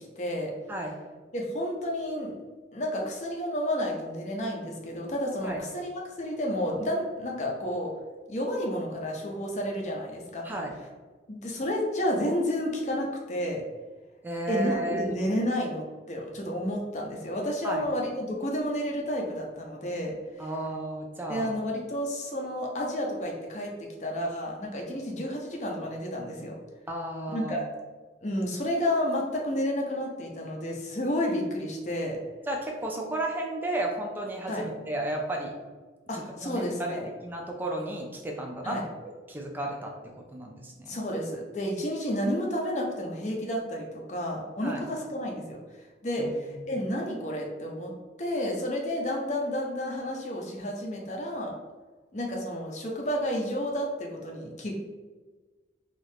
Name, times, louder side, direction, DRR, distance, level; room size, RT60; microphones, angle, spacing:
voice 1, 0.2-0.5 1.3-2.4 2.7-7.9 8.3-10.5 11.3-13.6 14.5-20.5 21.3-23.7 24.0-26.5 27.3-27.6 28.2-32.2 34.5-34.7 36.1-37.1 38.6-38.8 40.9-45.6 46.0-47.9 48.2-51.5 52.1-54.7, equal, 40° left, 0 dB, 0.6 m, -31 dB
voice 2, 14.2-15.1 17.6-17.9 20.4-21.5 26.9-27.6 32.5-35.5 36.1-38.8 39.0-39.9 40.3-41.0 44.6-44.8 46.2-46.3 46.6-46.8, right 1 dB, 10° right, 0 dB, 0.3 m, -33 dB
2.7 x 2.4 x 3.4 m, 1.3 s
head